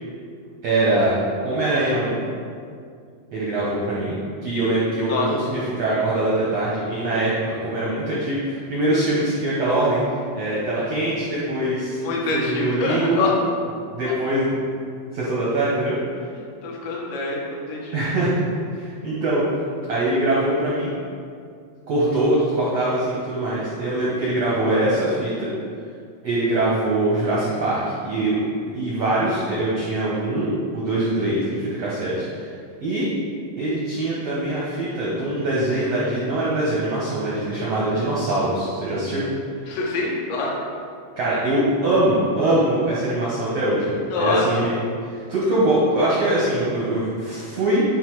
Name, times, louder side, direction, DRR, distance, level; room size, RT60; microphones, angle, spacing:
voice 1, 0.6-1.1 1.4-2.2 3.3-4.2 4.4-12.0 12.3-13.3 13.9-14.6 15.1-15.9 17.9-19.4 19.9-20.9 21.9-25.5 26.2-28.4 28.7-32.5 32.8-33.1 33.6-39.2 41.2-43.8 44.2-44.7 45.3-47.8, right 1 dB, 80° right, -7 dB, 1.4 m, -23 dB
voice 2, 12.0-13.3 14.0-14.1 16.3-18.0 39.7-40.5 44.1-44.6, left 3 dB, 75° left, -3 dB, 3.6 m, -25 dB
11.0 x 4.2 x 4.8 m, 2.2 s
omnidirectional pair, 5.2 m